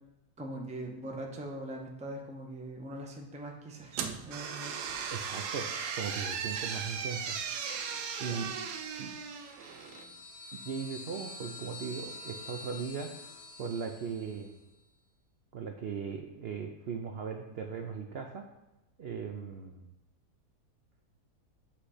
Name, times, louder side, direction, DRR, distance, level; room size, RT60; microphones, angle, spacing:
voice 1, 0.4-4.8 8.2-8.5 8.8-9.0, right 1 dB, 10° right, 1 dB, 0.4 m, -42 dB
sound 1, 3.9-10.1, right 6 dB, 90° right, 1.2 m, -37 dB
voice 2, 5.1-5.7 5.9-7.4 8.2-8.4 9.0-9.1 10.5-13.1 13.6-14.5 15.5-18.4 19.0-19.9, right 6 dB, 65° right, 3 dB, 0.6 m, -38 dB
sound 2, 9.2-14.6, left 2 dB, 80° left, 1.1 m, -47 dB
8.6 x 3.3 x 4.8 m, 0.97 s
omnidirectional pair, 1.7 m